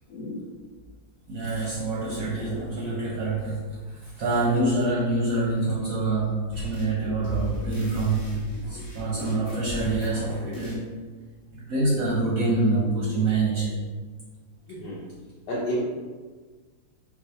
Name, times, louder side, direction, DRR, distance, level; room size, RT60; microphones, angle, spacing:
voice 1, 1.3-10.9 11.5-13.8, right 2 dB, 65° right, -5 dB, 0.9 m, -26 dB
sound 1, 6.5-7.0 7.2-10.2 10.5-10.8, left 1 dB, 40° left, 1.1 m, -36 dB
voice 2, 9.1-9.4 14.7-15.0 15.5-15.8, equal, 70° left, -6 dB, 1.2 m, -32 dB
4.6 x 2.3 x 2.7 m, 1.4 s
omnidirectional pair, 2.1 m